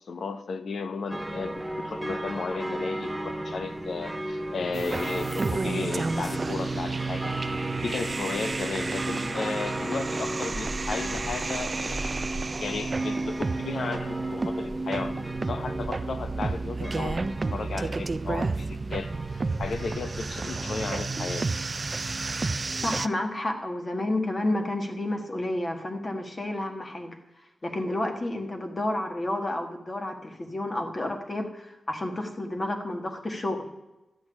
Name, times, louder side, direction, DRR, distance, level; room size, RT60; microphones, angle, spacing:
voice 1, 0.1-7.3 7.8-12.0 12.6-17.2 17.5-21.5, left 4 dB, 65° left, 10 dB, 0.8 m, -34 dB
sound 1, 1.1-20.9, right 1 dB, 5° right, 0.7 m, -36 dB
sound 2, 4.7-23.1, right 3 dB, 30° right, 0.4 m, -31 dB
voice 2, 22.8-27.2 27.6-33.7, left 1 dB, 30° left, 4 dB, 1.6 m, -30 dB
13.0 x 6.2 x 9.7 m, 0.98 s
wide cardioid pair, 175°, 0 cm